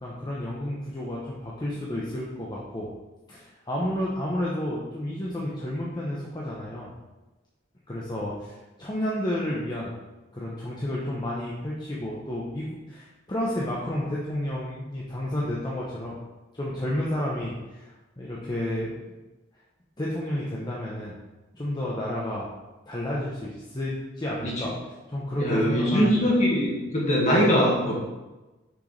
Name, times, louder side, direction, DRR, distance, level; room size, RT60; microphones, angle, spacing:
voice 1, 0.0-2.9 3.3-6.9 7.9-9.9 10.3-16.2 16.5-18.9 20.0-21.2 21.5-22.5 22.9-24.7 25.1-26.3, left 1 dB, 20° left, -5 dB, 0.9 m, -31 dB
voice 2, 25.4-27.9, equal, 40° left, -4 dB, 2.0 m, -22 dB
6.7 x 6.4 x 3.4 m, 1.1 s
head